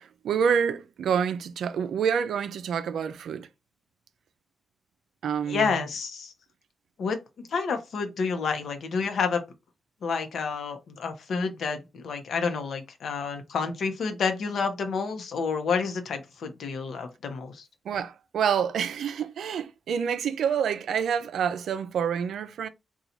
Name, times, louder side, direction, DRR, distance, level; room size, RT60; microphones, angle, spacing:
voice 1, 0.0-3.5 5.2-5.7 17.9-22.7, right 7 dB, 80° right, 0.4 m, -27 dB
voice 2, 5.5-6.3 7.0-9.4 10.0-17.7, left 5 dB, 75° left, 0.7 m, -29 dB
2.9 x 2.3 x 3.9 m
cardioid pair, 60°, 0 cm